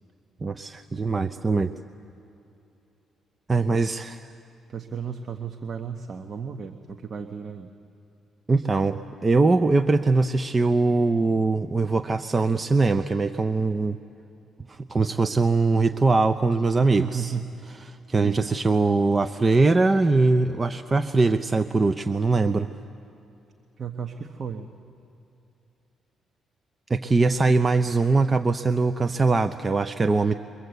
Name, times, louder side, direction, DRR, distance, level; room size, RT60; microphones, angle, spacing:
voice 1, 0.4-1.7 3.5-4.2 8.5-14.0 14.7-17.3 17.9-22.7 26.9-30.3, right 3 dB, 25° right, 9 dB, 0.7 m, -22 dB
voice 2, 4.7-7.7 16.9-17.5 17.8-17.9 18.2-18.6 23.8-24.7, right 6 dB, 45° right, 6 dB, 1.2 m, -34 dB
29.0 x 23.5 x 8.1 m, 2.8 s
cardioid pair, 90°, 0 cm